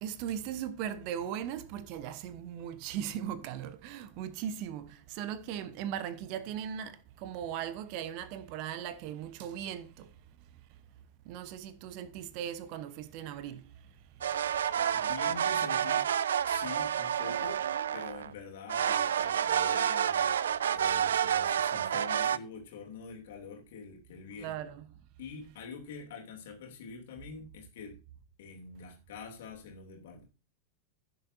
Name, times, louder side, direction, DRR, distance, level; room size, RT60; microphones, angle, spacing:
voice 1, 0.0-10.1 11.3-13.7 24.4-24.8, right 9 dB, 45° right, 0.9 m, -38 dB
sound 1, 14.2-18.3 18.7-22.4, right 9 dB, 65° right, 0.4 m, -29 dB
voice 2, 14.9-16.1 16.5-17.6 17.9-20.4 20.7-24.7 25.2-27.9 28.4-30.2, left 5 dB, 55° left, 2.9 m, -45 dB
15.5 x 7.1 x 2.7 m
figure-of-eight pair, 90°, 0 cm